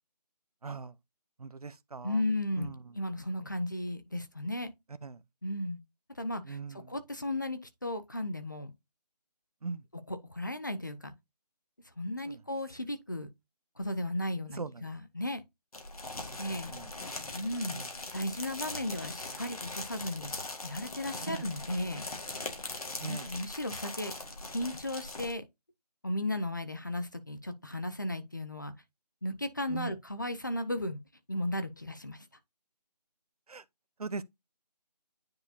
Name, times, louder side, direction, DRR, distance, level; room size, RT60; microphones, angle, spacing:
voice 1, 0.6-0.9 1.4-2.2 2.6-2.7 5.0-5.2 6.5-6.8 9.6-9.8 12.3-12.4 14.6-14.7 16.5-16.9 17.3-17.4 17.7-17.8 21.3-21.4 23.0-23.3 29.7-29.9 33.5-33.6 34.0-34.2, right 4 dB, 60° right, 0.7 m, -39 dB
voice 2, 2.0-4.7 5.4-5.8 6.1-8.7 10.1-11.1 12.0-13.3 13.8-15.4 16.4-16.7 17.3-17.8 18.1-22.0 23.0-24.1 24.5-25.4 26.0-28.7 29.2-31.0 31.3-32.3, left 1 dB, 30° left, 0.6 m, -35 dB
sound 1, 15.7-25.3, left 2 dB, 60° left, 1.9 m, -41 dB
9.5 x 4.4 x 2.8 m
figure-of-eight pair, 175°, 21 cm